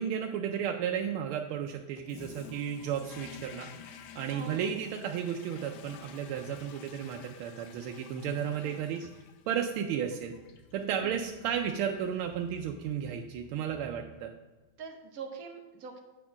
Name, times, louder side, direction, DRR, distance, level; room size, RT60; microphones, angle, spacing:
voice 1, 0.0-9.0 9.5-10.4 10.7-14.3, right 8 dB, 85° right, 3 dB, 1.4 m, -33 dB
Toilet flush, 2.1-14.4, left 7 dB, 75° left, 1.0 m, -51 dB
voice 2, 4.3-4.7 8.6-8.7 9.0-9.1 11.0-11.2 14.8-16.0, right 5 dB, 55° right, 4 dB, 1.1 m, -43 dB
8.2 x 4.3 x 5.7 m, 1.2 s
omnidirectional pair, 2.3 m